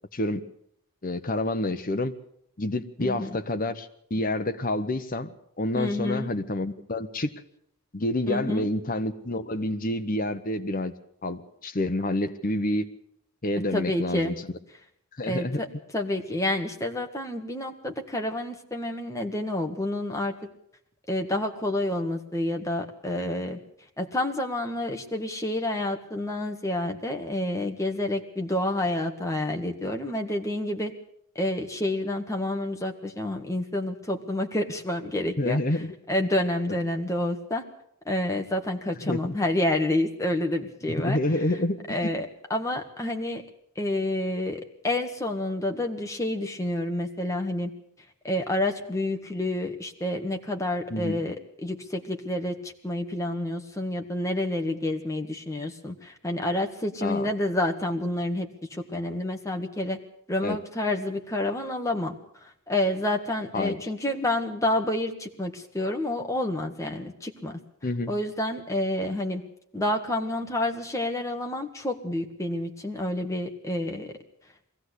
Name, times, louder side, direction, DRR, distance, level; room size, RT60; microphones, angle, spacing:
voice 1, 0.1-0.4 1.0-2.1 2.6-7.3 7.9-10.9 11.2-12.9 13.4-14.3 15.2-15.6 35.4-35.9 39.0-39.3 40.9-42.1 50.9-51.2 57.0-57.3 60.4-60.6 63.5-63.8 67.8-68.1, left 1 dB, 40° left, 10 dB, 1.0 m, -28 dB
voice 2, 3.0-3.4 5.7-6.3 8.3-8.7 13.7-14.3 15.3-15.7 15.9-20.3 21.1-23.6 24.0-30.9 31.4-35.6 36.1-37.7 38.1-41.2 41.9-43.4 43.8-47.7 48.2-60.0 60.3-67.6 68.1-69.4 69.7-74.1, left 1 dB, 15° left, 3 dB, 1.6 m, -29 dB
22.0 x 16.0 x 8.2 m, 0.71 s
head